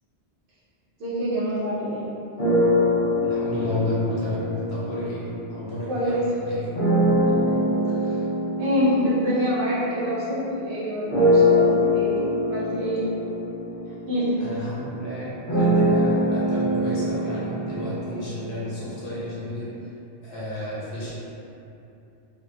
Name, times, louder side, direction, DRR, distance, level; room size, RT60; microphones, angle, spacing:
voice 1, 1.0-2.1 5.0-5.1 5.9-6.3 7.0-7.6 8.0-8.2 8.6-13.1 14.1-14.3, equal, 80° right, -9 dB, 1.1 m, -26 dB
sound 1, 2.4-5.9 6.7-10.5 11.1-19.1, left 1 dB, 55° left, 0.7 m, -23 dB
voice 2, 3.2-5.2 5.5-6.6 14.4-19.7 20.2-21.2, left 1 dB, 80° left, -8 dB, 1.1 m, -31 dB
2.8 x 2.4 x 2.2 m, 2.7 s
omnidirectional pair, 1.0 m